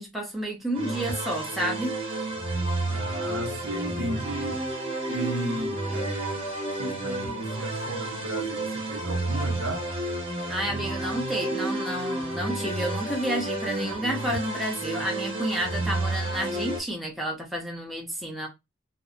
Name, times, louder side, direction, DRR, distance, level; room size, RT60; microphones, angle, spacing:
voice 1, 0.0-2.0 10.5-18.5, equal, ahead, 0.6 m, -30 dB
sound 1, 0.7-16.8, right 2 dB, 30° right, 0.8 m, -31 dB
voice 2, 2.9-4.6 5.1-6.4 6.8-9.9, right 1 dB, 65° right, 0.7 m, -34 dB
2.5 x 2.1 x 2.5 m
head